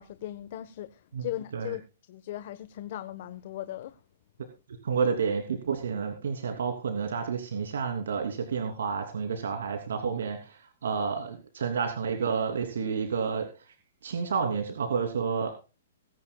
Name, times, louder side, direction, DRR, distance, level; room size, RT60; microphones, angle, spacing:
voice 1, 0.0-1.8 2.1-4.0, left 13 dB, 50° left, 1.2 m, -38 dB
voice 2, 1.1-1.7 4.8-13.5 14.0-15.5, right 6 dB, 80° right, 3.1 m, -30 dB
23.5 x 10.5 x 2.3 m
hypercardioid pair, 150°, 0 cm